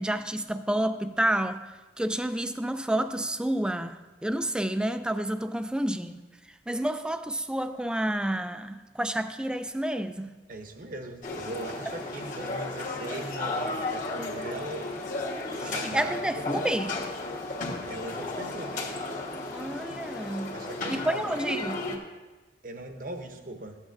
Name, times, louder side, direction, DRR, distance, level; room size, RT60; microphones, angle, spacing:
voice 1, 0.0-10.4 15.5-17.0 19.5-20.5 20.9-22.0, right 1 dB, 5° right, 0.3 m, -30 dB
voice 2, 10.5-14.8 15.6-16.4 17.9-18.9 20.5-21.4 22.6-23.8, right 2 dB, 50° right, 0.9 m, -40 dB
sound 1, 11.2-22.0, left 2 dB, 50° left, 1.3 m, -34 dB
14.5 x 8.4 x 2.6 m
head